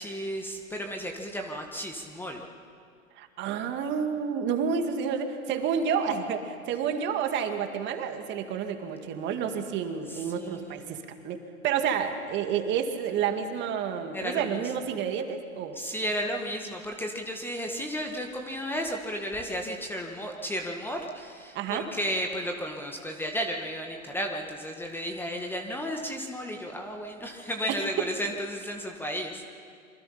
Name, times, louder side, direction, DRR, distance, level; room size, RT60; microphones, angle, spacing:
voice 1, 0.0-2.4 10.1-10.9 14.1-14.6 15.7-29.6, equal, 5° left, 2 dB, 1.6 m, -33 dB
voice 2, 3.2-11.4 11.6-15.8 21.6-21.9 27.7-27.8, right 7 dB, 25° right, 6 dB, 2.0 m, -30 dB
26.5 x 24.5 x 5.7 m, 2.2 s
hypercardioid pair, 120°, 41 cm